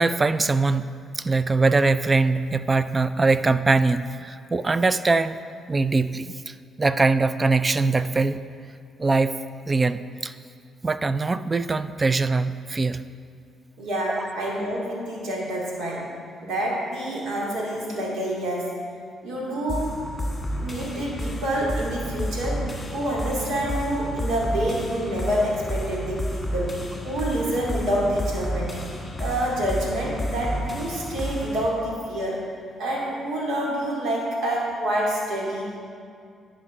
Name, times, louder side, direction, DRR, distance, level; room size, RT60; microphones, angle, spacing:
voice 1, 0.0-5.4 5.7-8.4 9.0-9.3 9.7-10.3 10.8-13.0 14.1-14.2, right 3 dB, 25° right, 13 dB, 0.3 m, -22 dB
voice 2, 13.8-16.1 16.4-18.7 19.2-20.0 20.6-22.7 22.9-26.8 27.0-28.8 29.2-32.4 32.8-35.8, right 1 dB, 80° right, -4 dB, 2.3 m, -27 dB
sound 1, 19.7-31.7, equal, 15° left, 1.6 m, -31 dB
11.0 x 5.1 x 5.4 m, 2.2 s
cardioid pair, 90°, 0 cm